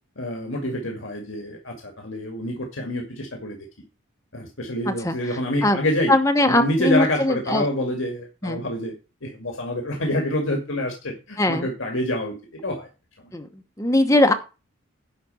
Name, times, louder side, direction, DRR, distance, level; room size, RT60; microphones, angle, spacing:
voice 1, 0.2-3.6 4.3-6.1 6.4-8.9 9.2-12.3 12.6-12.9, left 1 dB, 70° left, 2 dB, 2.0 m, -27 dB
voice 2, 4.8-5.8 6.1-7.7 8.4-8.6 11.4-11.7 13.3-14.3, left 1 dB, 15° left, 5 dB, 1.0 m, -21 dB
11.0 x 4.3 x 7.6 m, 0.31 s
head